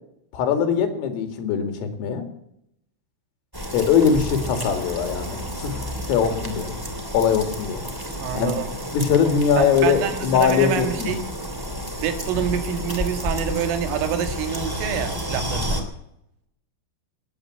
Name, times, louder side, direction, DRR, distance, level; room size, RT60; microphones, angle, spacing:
voice 1, 0.3-2.2 3.7-6.7 7.1-7.8 8.4-8.5 8.9-11.1, left 7 dB, 85° left, 7 dB, 4.9 m, -21 dB
sound 1, 3.5-15.8, equal, 10° right, 1.3 m, -31 dB
voice 2, 8.2-8.7 9.6-11.2 12.0-15.8, right 8 dB, 80° right, 7 dB, 4.4 m, -27 dB
19.5 x 9.3 x 7.8 m, 0.77 s
omnidirectional pair, 5.8 m